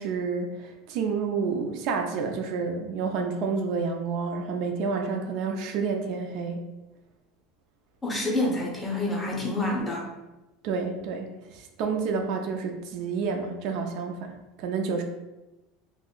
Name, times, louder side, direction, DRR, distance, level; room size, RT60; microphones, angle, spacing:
voice 1, 0.0-6.6 10.6-15.0, right 5 dB, 55° right, 4 dB, 0.3 m, -29 dB
voice 2, 8.0-10.1, left 2 dB, 10° left, -2 dB, 0.6 m, -27 dB
2.5 x 2.1 x 3.6 m, 1.0 s
supercardioid pair, 150°, 0 cm